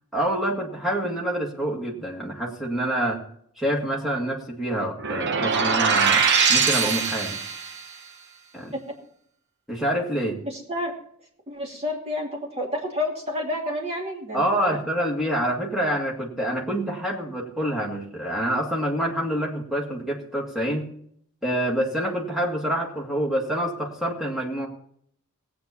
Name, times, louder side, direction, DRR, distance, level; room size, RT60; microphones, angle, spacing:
voice 1, 0.1-3.2 3.6-7.4 8.5-8.7 9.7-10.4 14.3-20.9 21.4-24.7, right 1 dB, ahead, -2 dB, 1.9 m, -27 dB
sound 1, 5.0-7.8, right 5 dB, 50° right, 0.9 m, -22 dB
voice 2, 10.4-10.9 11.5-14.8, left 1 dB, 30° right, -1 dB, 2.6 m, -30 dB
18.0 x 8.5 x 4.3 m, 0.66 s
head